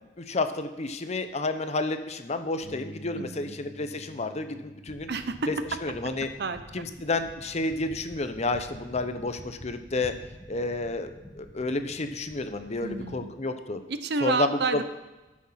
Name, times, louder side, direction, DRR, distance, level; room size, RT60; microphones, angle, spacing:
voice 1, 0.2-5.1 5.5-5.6 5.8-6.3 6.7-10.1 10.5-13.8 14.2-14.8, left 2 dB, 40° left, 8 dB, 0.8 m, -30 dB
Bass guitar, 2.6-8.9, equal, 80° left, 1.7 m, -50 dB
voice 2, 3.1-3.6 5.1-5.5 6.4-6.9 12.8-13.3 13.9-14.8, right 4 dB, 65° right, 11 dB, 0.7 m, -30 dB
sound 1, 4.9-13.2, left 1 dB, 15° left, 1.6 m, -48 dB
13.0 x 6.4 x 5.7 m, 1.1 s
head